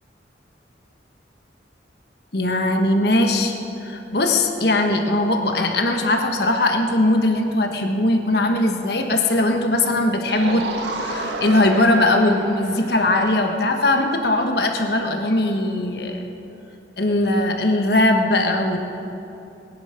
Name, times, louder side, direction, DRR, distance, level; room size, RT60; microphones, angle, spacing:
voice 1, 2.3-3.5 3.8-10.7 11.0-16.2 17.0-18.8, left 2 dB, 60° left, 4 dB, 1.3 m, -20 dB
sound 1, 10.3-13.8 16.4-16.5, right 2 dB, 70° right, 1.5 m, -31 dB
22.0 x 10.5 x 5.2 m, 2.9 s
head